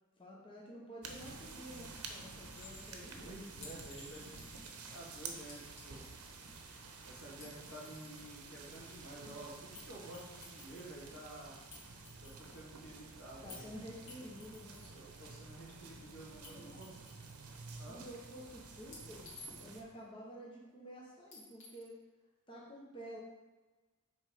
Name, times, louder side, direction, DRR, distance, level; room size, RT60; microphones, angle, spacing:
voice 1, 0.2-3.3 13.4-14.8 16.3-16.8 17.9-19.2 19.6-22.0 22.5-23.2, equal, 25° left, -4 dB, 0.9 m, -50 dB
sound 1, 1.0-19.8, right 4 dB, 85° right, 0.9 m, -51 dB
Chink clink, 2.5-3.0 3.6-4.7 5.5-6.2 7.2-8.2 9.7-9.9 10.1-11.0 11.7-12.7 13.5-13.7 14.1-14.9 16.4-16.5 16.8-17.7 18.9-19.9 21.3-21.9, left 2 dB, 60° left, 1.8 m, -54 dB
voice 2, 3.1-4.3 4.9-6.1 7.0-11.6 12.2-13.7 14.8-17.0 17.8-18.0, right 1 dB, 80° left, -5 dB, 2.2 m, -51 dB
6.3 x 4.1 x 4.8 m, 1.2 s
head